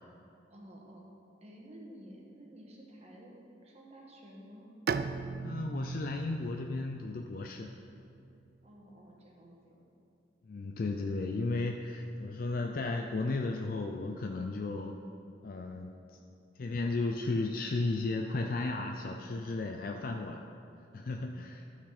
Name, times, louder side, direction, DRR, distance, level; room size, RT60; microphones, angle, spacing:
voice 1, 0.5-1.1 1.4-3.4 3.6-4.7 8.6-9.8, equal, 35° right, -2 dB, 1.4 m, -52 dB
Bowed string instrument, 4.9-8.5, right 5 dB, 60° right, 0.3 m, -38 dB
voice 2, 5.4-7.7 10.4-14.9 15.4-15.9 16.6-20.5 20.9-21.6, left 3 dB, 50° left, 3 dB, 0.4 m, -34 dB
12.5 x 6.2 x 4.3 m, 2.6 s
head